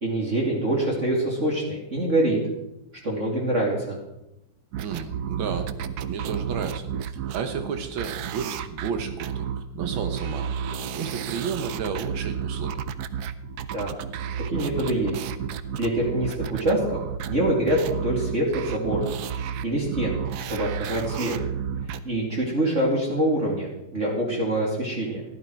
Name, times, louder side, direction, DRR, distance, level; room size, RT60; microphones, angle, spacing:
voice 1, 0.0-2.4 3.0-4.0 13.7-13.9 14.5-15.2 15.8-17.0 17.3-19.0 19.6-20.2 20.5-21.4 22.0-25.2, right 1 dB, 40° right, -3 dB, 2.8 m, -25 dB
sound 1, 4.7-22.0, right 8 dB, 65° right, 1.0 m, -32 dB
voice 2, 4.8-5.8 6.1-6.9 7.3-10.5 11.0-12.8, right 6 dB, 85° right, 7 dB, 1.9 m, -32 dB
15.0 x 12.0 x 4.6 m, 0.90 s
omnidirectional pair, 2.1 m